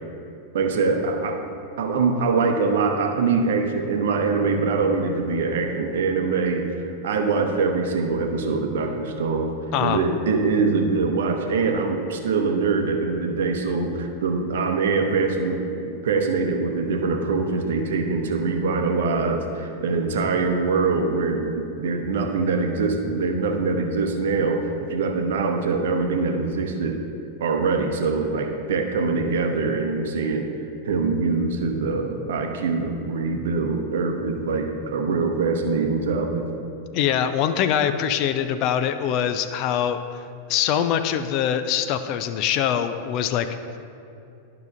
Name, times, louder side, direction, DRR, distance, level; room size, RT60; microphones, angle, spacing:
voice 1, 0.5-1.4 1.8-9.5 9.8-27.0 27.4-30.5 30.8-36.5, right 4 dB, 60° right, 4 dB, 0.8 m, -23 dB
voice 2, 36.9-40.2 40.5-43.5, left 9 dB, 40° left, 9 dB, 0.4 m, -23 dB
11.5 x 5.7 x 2.5 m, 2.6 s
figure-of-eight pair, 90°, 0 cm